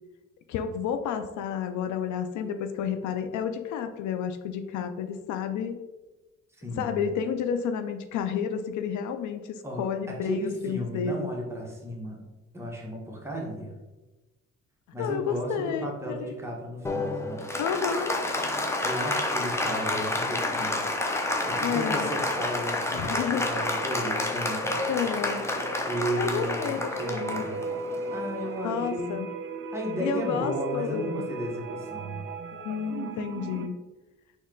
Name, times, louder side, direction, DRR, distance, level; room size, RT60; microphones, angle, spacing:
voice 1, 0.5-5.8 6.8-11.3 15.0-16.3 17.6-18.3 21.6-22.1 22.9-23.5 24.9-25.4 26.1-27.4 28.6-29.3 30.0-31.3 32.6-33.8, left 7 dB, 75° left, 8 dB, 0.5 m, -31 dB
voice 2, 6.6-7.0 9.6-12.2 12.5-13.7 14.9-17.5 18.8-20.9 21.4-24.8 25.8-27.7 28.1-29.3 29.7-32.2, equal, 10° right, -2 dB, 1.3 m, -34 dB
Applause, 16.8-28.7, left 2 dB, 10° left, 0.6 m, -29 dB
sound 1, 23.4-33.7, right 3 dB, 45° right, 0.5 m, -37 dB
4.2 x 3.0 x 3.8 m, 1.1 s
cardioid pair, 90°, 30 cm